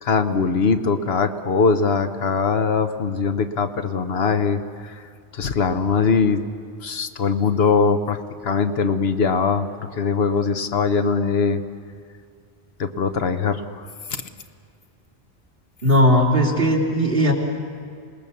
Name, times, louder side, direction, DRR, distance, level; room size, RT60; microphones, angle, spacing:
voice 1, 0.0-5.0 5.3-6.4 6.8-9.7 9.9-11.6 12.8-14.2, left 5 dB, 70° left, 8 dB, 1.2 m, -21 dB
voice 2, 15.8-17.3, equal, 55° right, -3 dB, 3.5 m, -17 dB
27.0 x 20.0 x 7.0 m, 2.3 s
omnidirectional pair, 1.1 m